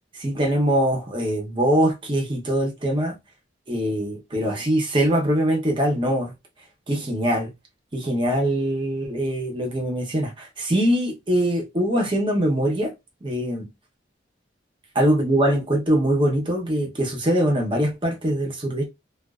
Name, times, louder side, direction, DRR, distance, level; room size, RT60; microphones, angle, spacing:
voice 1, 0.2-3.2 3.7-6.3 6.9-7.5 7.9-12.9 13.2-13.7 14.9-18.9, right 1 dB, 25° right, 0.8 m, -22 dB
2.4 x 2.3 x 2.3 m
head